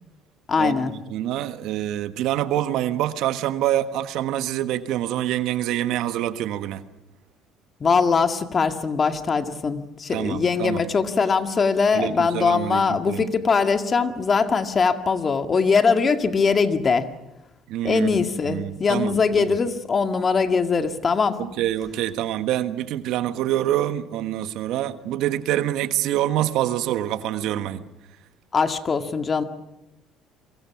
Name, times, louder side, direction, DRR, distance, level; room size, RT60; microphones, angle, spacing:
voice 1, 0.5-0.9 7.8-17.1 17.8-21.4 28.5-29.4, left 5 dB, 35° left, 7 dB, 2.1 m, -21 dB
voice 2, 1.1-6.8 10.1-10.8 11.9-13.3 17.7-18.2 18.5-19.6 21.4-27.8, right 12 dB, 70° right, 11 dB, 1.4 m, -26 dB
29.0 x 23.5 x 6.0 m, 0.90 s
supercardioid pair, 80°, 0 cm